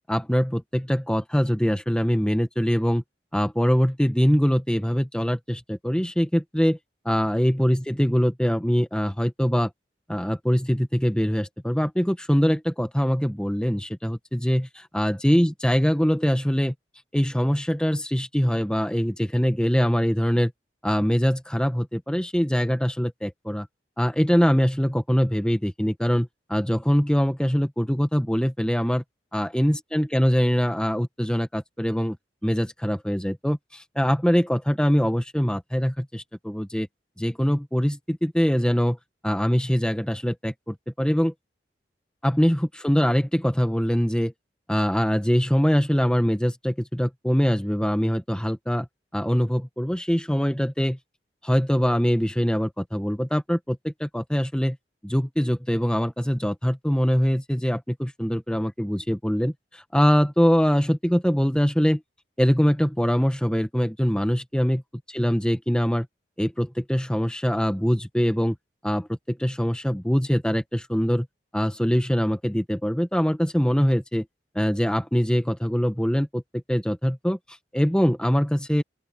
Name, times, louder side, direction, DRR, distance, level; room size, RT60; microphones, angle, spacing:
voice 1, 0.1-3.0 3.3-6.8 7.0-9.7 10.1-16.7 17.1-20.5 20.8-23.7 24.0-29.0 29.3-32.2 32.4-36.9 37.2-39.0 39.2-41.3 42.2-44.3 44.7-48.9 49.1-51.0 51.4-54.8 55.0-62.0 62.4-64.8 65.1-66.1 66.4-68.6 68.8-71.3 71.5-74.2 74.5-77.4 77.7-78.8, equal, 5° left, 1.4 m, -23 dB
open air
head